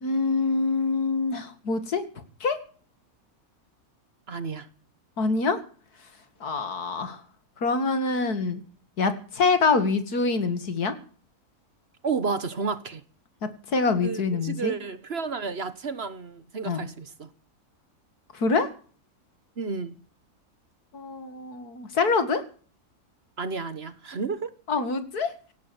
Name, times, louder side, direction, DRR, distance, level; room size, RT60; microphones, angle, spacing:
voice 1, 0.0-2.0 2.4-2.6 5.2-5.6 6.4-7.2 7.6-8.6 9.0-10.9 13.7-14.7 16.6-16.9 18.3-18.7 20.9-22.4 24.7-25.5, left 4 dB, 80° left, 2.6 m, -25 dB
voice 2, 4.3-4.7 12.0-13.0 14.0-17.3 19.6-19.9 23.4-24.5, right 5 dB, 45° right, 1.2 m, -31 dB
17.5 x 10.5 x 7.1 m
omnidirectional pair, 1.6 m